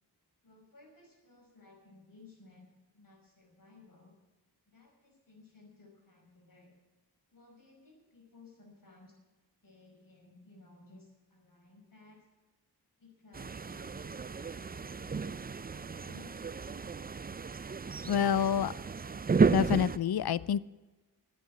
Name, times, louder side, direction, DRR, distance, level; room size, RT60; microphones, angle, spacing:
voice 1, 0.4-2.7 2.9-4.1 4.7-6.7 7.3-9.1 9.6-12.2 13.0-14.1 14.4-16.3, left 3 dB, 55° left, 0 dB, 5.5 m, -58 dB
sound 1, 13.3-20.0, right 5 dB, 25° right, 0.4 m, -32 dB
voice 2, 18.1-18.7 19.5-20.6, left 8 dB, 70° left, 20 dB, 0.6 m, -27 dB
11.5 x 9.3 x 8.8 m, 1.2 s
wide cardioid pair, 70°, 39 cm